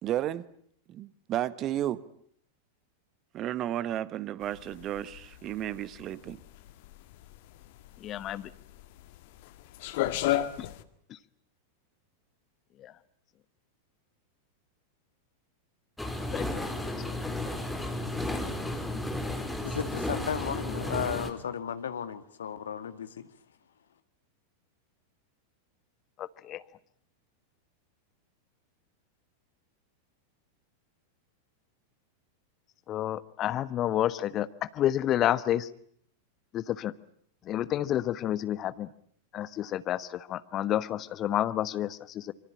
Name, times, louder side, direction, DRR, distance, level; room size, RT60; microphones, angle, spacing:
voice 1, 0.0-0.4 0.9-2.0 3.3-6.4, right 12 dB, 35° right, 1.3 m, -33 dB
sound 1, 4.4-10.8, left 14 dB, 50° left, 1.8 m, -33 dB
voice 2, 8.0-8.5 10.3-10.4 12.8-12.9 16.3-16.6 26.2-26.6 32.9-35.7 36.5-36.9 37.4-38.9 39.3-42.3, left 12 dB, 30° left, 1.3 m, -30 dB
sound 2, 16.0-21.3, left 1 dB, 5° left, 3.9 m, -33 dB
voice 3, 19.6-23.3, left 8 dB, 65° left, 2.0 m, -35 dB
26.0 x 25.0 x 8.8 m
figure-of-eight pair, 90°, 0 cm